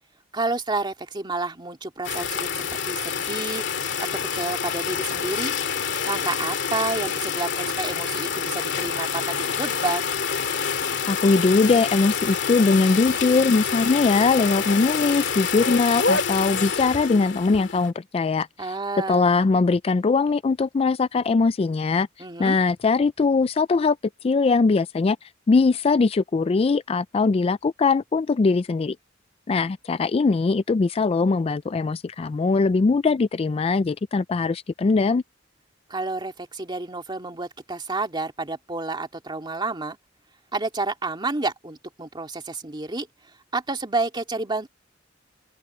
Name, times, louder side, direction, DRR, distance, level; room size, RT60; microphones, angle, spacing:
voice 1, 0.3-4.1 4.3-5.5 6.0-10.1 18.6-19.3 22.2-22.6 35.9-40.0 40.5-43.1 43.5-44.7, right 3 dB, 25° right, 2.4 m, -30 dB
sound 1, 2.0-17.9, left 6 dB, 65° left, 2.5 m, -27 dB
voice 2, 11.1-18.5 19.1-22.1 22.4-24.0 24.2-25.2 25.5-29.0 29.5-35.2, left 4 dB, 30° left, 0.3 m, -21 dB
open air
head